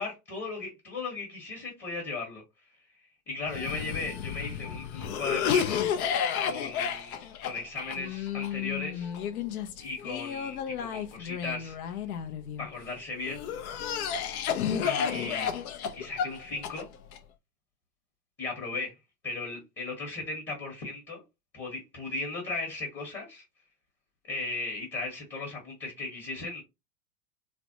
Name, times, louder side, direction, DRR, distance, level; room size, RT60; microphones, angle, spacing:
voice 1, 0.0-2.4 3.3-5.8 6.4-9.1 9.8-11.8 12.6-13.6 14.8-15.5 16.0-16.9 18.4-18.9 19.2-21.2 21.5-23.4 24.3-26.6, left 3 dB, 25° left, 1.1 m, -36 dB
Cough, 3.4-12.7 13.2-17.2, left 8 dB, 60° left, 0.7 m, -32 dB
3.3 x 2.0 x 2.7 m
hypercardioid pair, 110°, 48 cm